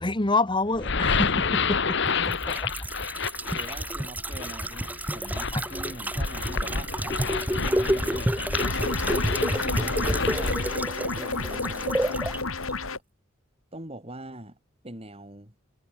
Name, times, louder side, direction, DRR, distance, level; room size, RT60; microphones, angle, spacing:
voice 1, 0.0-2.0 2.5-2.7 5.5-5.6, left 3 dB, 25° left, 1.4 m, -26 dB
sound 1, 0.7-10.8, left 5 dB, 60° left, 1.8 m, -29 dB
sound 2, 2.0-12.4 12.7-12.8, right 1 dB, 10° right, 1.0 m, -30 dB
voice 2, 2.1-2.6 3.4-8.3 9.5-10.6 11.0-12.4 13.7-14.6 14.8-15.5, right 1 dB, 30° right, 5.5 m, -43 dB
sound 3, 8.6-13.0, left 3 dB, 90° left, 3.7 m, -31 dB
head